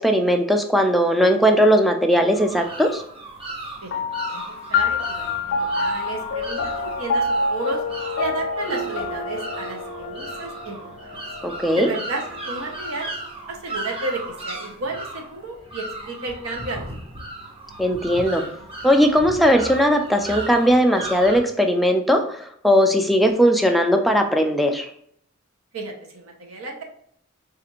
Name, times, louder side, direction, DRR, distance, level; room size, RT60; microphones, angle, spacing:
voice 1, 0.0-3.0 11.4-11.9 17.8-18.5 18.8-24.9, equal, ahead, 4 dB, 0.3 m, -18 dB
sound 1, 2.3-21.4, right 2 dB, 30° right, 0.7 m, -36 dB
voice 2, 3.8-4.4 4.7-7.8 8.2-10.8 11.7-13.1 13.5-16.9 25.7-26.8, right 2 dB, 85° right, 1 dB, 0.8 m, -32 dB
sound 2, 3.9-12.7, left 3 dB, 55° left, 0.5 m, -27 dB
4.1 x 2.4 x 2.9 m, 0.65 s
head